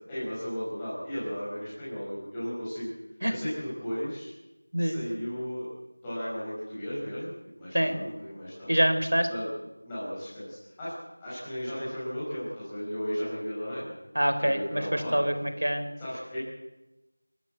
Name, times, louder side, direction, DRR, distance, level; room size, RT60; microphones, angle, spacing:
voice 1, 0.1-2.9 3.3-4.3 4.8-5.7 6.0-7.3 7.6-8.8 9.3-9.5 9.8-10.9 11.2-13.9 14.4-15.3 16.0-16.4, equal, 5° left, -11 dB, 5.7 m, -35 dB
voice 2, 8.7-9.3 14.2-15.8, equal, 90° right, 8 dB, 4.0 m, -25 dB
28.5 x 13.5 x 8.0 m, 1.0 s
figure-of-eight pair, 180°, 0 cm